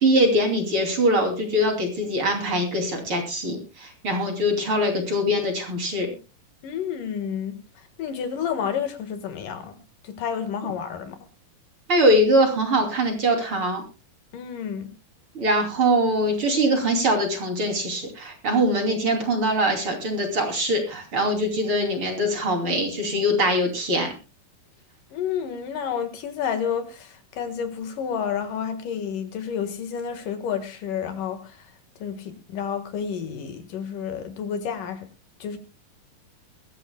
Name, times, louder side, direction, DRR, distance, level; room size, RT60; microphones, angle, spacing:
voice 1, 0.0-6.1 11.9-13.8 15.4-24.1, equal, 40° right, 3 dB, 3.5 m, -22 dB
voice 2, 6.6-7.6 8.0-9.8 10.0-11.2 14.3-14.9 25.1-31.7 32.0-35.1 35.4-35.6, left 7 dB, 70° left, 8 dB, 3.1 m, -30 dB
22.5 x 14.0 x 2.2 m, 0.30 s
omnidirectional pair, 4.0 m